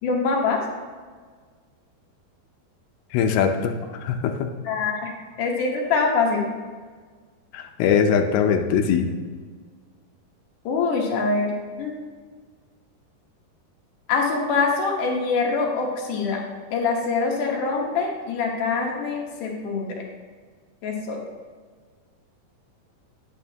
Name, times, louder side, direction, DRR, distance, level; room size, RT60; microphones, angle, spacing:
voice 1, 0.0-0.6 4.6-5.1 5.4-6.5 10.7-12.1 14.1-16.4 16.7-20.0 20.8-21.2, left 4 dB, 65° left, 0 dB, 2.4 m, -24 dB
voice 2, 3.1-3.7 4.0-4.5 7.5-9.1, left 7 dB, 85° left, 5 dB, 2.5 m, -21 dB
9.3 x 8.9 x 2.8 m, 1.5 s
omnidirectional pair, 4.5 m